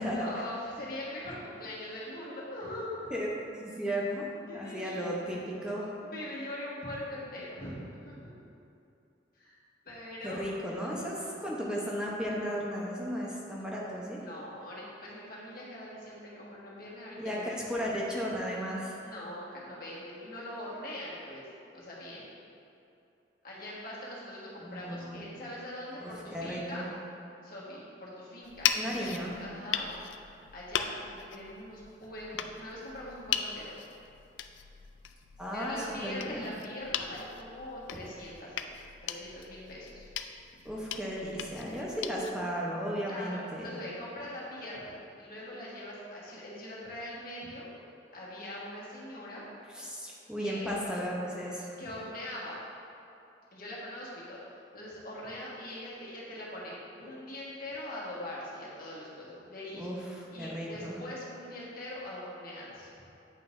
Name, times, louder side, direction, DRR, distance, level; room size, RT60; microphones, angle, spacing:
voice 1, 0.1-3.1 4.5-5.5 6.0-8.3 9.3-9.6 9.8-10.5 14.2-17.5 19.0-21.5 21.7-22.3 23.4-26.9 27.4-29.1 29.4-29.9 30.5-33.8 35.5-38.7 39.0-40.1 43.1-47.7 48.1-49.5 49.8-49.9 50.4-50.7 51.8-52.6 53.5-54.4 54.7-59.9 60.3-63.0, left 1 dB, 55° left, -6 dB, 1.6 m, -42 dB
voice 2, 3.6-4.3 4.5-5.9 10.2-14.2 17.2-19.0 24.6-25.2 26.0-26.8 28.7-29.4 35.4-35.8 36.0-36.5 40.6-43.7 49.7-51.7 59.7-60.9, equal, 5° right, -4 dB, 0.8 m, -35 dB
sound 1, 28.4-42.3, left 9 dB, 85° left, 0.3 m, -38 dB
8.8 x 5.5 x 2.6 m, 2.7 s
head